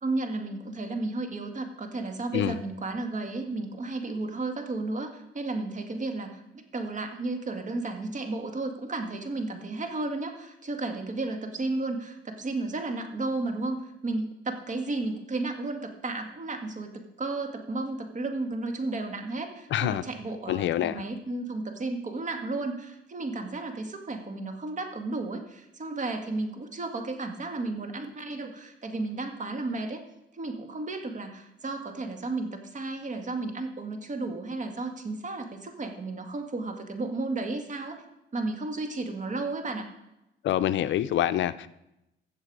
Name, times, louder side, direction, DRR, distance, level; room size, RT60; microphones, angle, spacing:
voice 1, 0.0-6.4 6.7-16.9 17.2-30.0 30.3-38.0 38.3-39.9, right 2 dB, 40° right, 5 dB, 1.9 m, -33 dB
voice 2, 19.7-20.0 20.5-21.0 40.4-41.7, left 12 dB, 70° left, 14 dB, 0.5 m, -26 dB
15.0 x 7.2 x 4.8 m, 0.89 s
cardioid pair, 90°, 20 cm